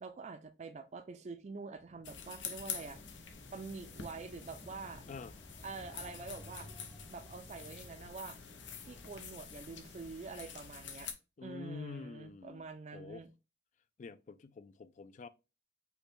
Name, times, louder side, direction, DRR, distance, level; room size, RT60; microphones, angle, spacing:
voice 1, 0.0-3.0 3.5-5.0 5.6-6.7 7.1-8.4 8.8-11.1 11.4-13.3, right 4 dB, 40° right, 0.4 m, -46 dB
sound 1, 1.7-10.5, equal, 15° left, 0.8 m, -57 dB
sound 2, 2.0-11.1, left 6 dB, 80° left, 0.8 m, -47 dB
voice 2, 11.4-12.6 12.9-13.2 14.0-15.3, left 4 dB, 40° left, 0.3 m, -47 dB
5.5 x 2.2 x 4.3 m
head